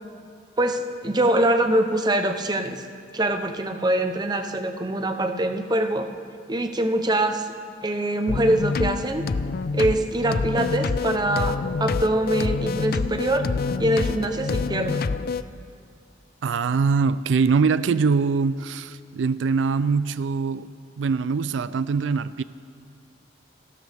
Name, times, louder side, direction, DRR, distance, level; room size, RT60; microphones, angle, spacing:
voice 1, 0.6-2.8 3.1-6.1 6.5-7.5 7.8-9.2 9.7-13.5 13.8-15.0, right 1 dB, 20° right, 7 dB, 0.8 m, -23 dB
sound 1, 8.3-15.4, left 4 dB, 55° left, 0.4 m, -27 dB
voice 2, 16.4-22.4, right 5 dB, 80° right, 15 dB, 0.4 m, -23 dB
29.5 x 12.5 x 3.5 m, 2.3 s
head